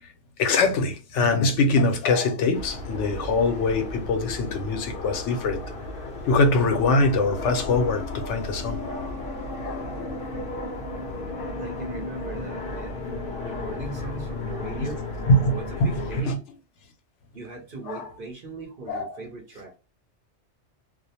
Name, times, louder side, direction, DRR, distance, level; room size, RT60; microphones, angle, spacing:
voice 1, 0.4-5.6 6.2-8.8 9.6-9.9 15.3-16.4 17.9-18.1 18.9-19.2, left 2 dB, 85° left, 0.9 m, -23 dB
sound 1, 2.5-16.2, left 2 dB, 60° left, 0.7 m, -34 dB
voice 2, 11.6-13.1 13.4-15.0 15.5-16.4 17.3-19.8, right 3 dB, 50° right, 0.9 m, -39 dB
2.4 x 2.0 x 2.7 m
omnidirectional pair, 1.2 m